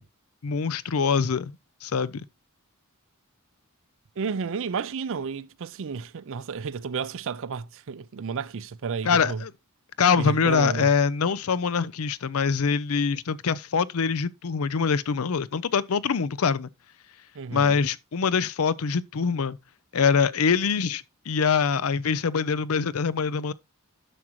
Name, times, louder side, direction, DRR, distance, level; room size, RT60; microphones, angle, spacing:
voice 1, 0.4-1.5 1.8-2.2 9.0-9.5 10.0-16.7 17.5-19.6 19.9-23.5, left 5 dB, 70° left, 0.5 m, -24 dB
voice 2, 4.2-9.4 10.2-10.9 17.3-17.8, right 5 dB, 60° right, 0.5 m, -32 dB
11.0 x 6.2 x 2.9 m
head